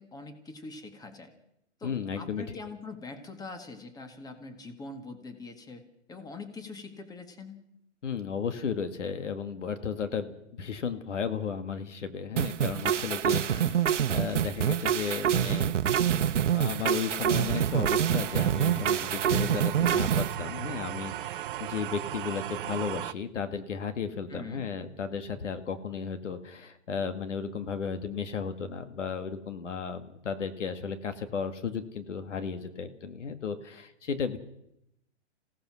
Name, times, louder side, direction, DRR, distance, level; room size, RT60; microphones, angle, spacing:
voice 1, 0.0-1.3 1.8-5.8 6.1-7.7 13.3-13.7 24.3-24.7, left 3 dB, 10° left, 7 dB, 1.9 m, -43 dB
voice 2, 1.8-2.4 8.0-13.7 14.1-15.8 16.5-34.4, left 6 dB, 80° left, 9 dB, 2.0 m, -34 dB
sound 1, 12.4-20.3, right 9 dB, 80° right, 1.0 m, -26 dB
sound 2, 14.5-23.1, right 13 dB, 45° right, 0.8 m, -39 dB
27.5 x 17.0 x 6.3 m, 0.81 s
hypercardioid pair, 135°, 36 cm